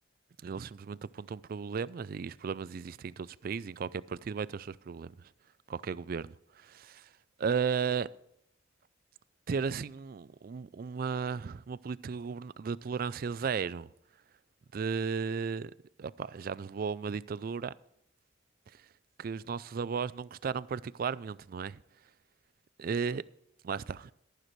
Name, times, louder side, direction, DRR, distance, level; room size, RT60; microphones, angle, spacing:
voice 1, 0.4-5.1 5.7-7.1 7.4-8.1 9.5-13.9 14.7-15.7 16.0-17.7 19.2-21.8 22.8-23.2 23.6-24.0, right 6 dB, 50° right, 0.4 m, -35 dB
14.0 x 11.5 x 3.2 m
head